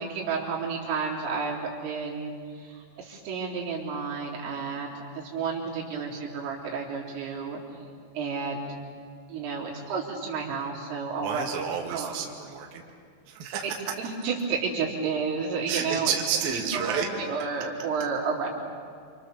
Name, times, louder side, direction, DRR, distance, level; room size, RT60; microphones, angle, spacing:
voice 1, 0.0-7.6 8.1-8.7 9.3-11.4 11.9-12.1 13.6-13.7 14.0-16.1 16.5-18.5, right 5 dB, 85° right, -4 dB, 6.4 m, -31 dB
voice 2, 11.2-12.8 13.3-13.7 15.7-17.1, right 7 dB, 55° right, 0 dB, 3.6 m, -30 dB
29.0 x 27.5 x 7.1 m, 2.2 s
omnidirectional pair, 5.7 m